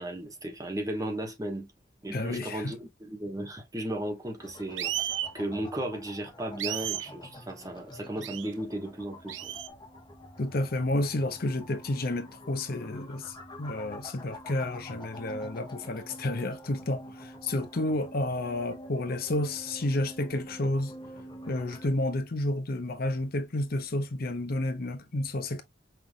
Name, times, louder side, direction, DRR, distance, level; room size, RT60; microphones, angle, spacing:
voice 1, 0.0-1.7 2.0-4.9 5.3-9.5, right 1 dB, 20° right, 1.2 m, -35 dB
voice 2, 2.1-2.7 10.4-20.9 21.5-25.6, left 1 dB, 55° left, 0.8 m, -31 dB
sound 1, 4.4-21.9, left 1 dB, 25° left, 1.1 m, -47 dB
sound 2, 4.8-5.3 6.6-7.1 8.2-8.5 9.3-9.7, right 12 dB, 80° right, 0.4 m, -33 dB
5.7 x 3.3 x 2.2 m
head